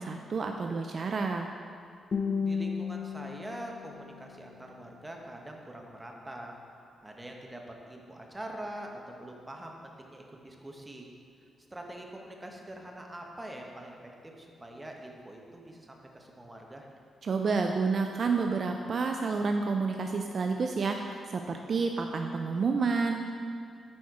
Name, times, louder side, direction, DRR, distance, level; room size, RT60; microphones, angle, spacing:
voice 1, 0.0-1.5 17.2-23.3, right 4 dB, 50° right, 4 dB, 0.3 m, -29 dB
Guitar, 2.1-5.1, left 5 dB, 45° left, 0.7 m, -34 dB
voice 2, 2.4-6.6 7.0-11.1 11.7-14.0 14.2-16.9, right 1 dB, 15° right, 1 dB, 0.9 m, -44 dB
8.6 x 4.2 x 4.7 m, 2.5 s
cardioid pair, 115°, 0 cm